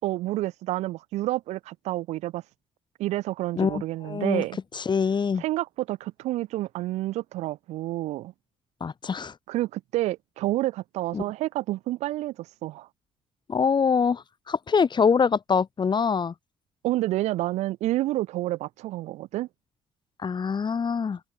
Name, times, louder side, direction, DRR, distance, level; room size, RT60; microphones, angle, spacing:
voice 1, 0.0-2.4 3.0-4.6 5.4-8.3 9.5-12.9 16.8-19.5, right 16 dB, 70° right, 5.4 m, -29 dB
voice 2, 3.6-4.4 4.7-5.4 8.8-9.3 11.1-11.2 13.5-16.3 20.2-21.2, left 6 dB, 40° left, 1.5 m, -24 dB
open air
hypercardioid pair, 45°, 12 cm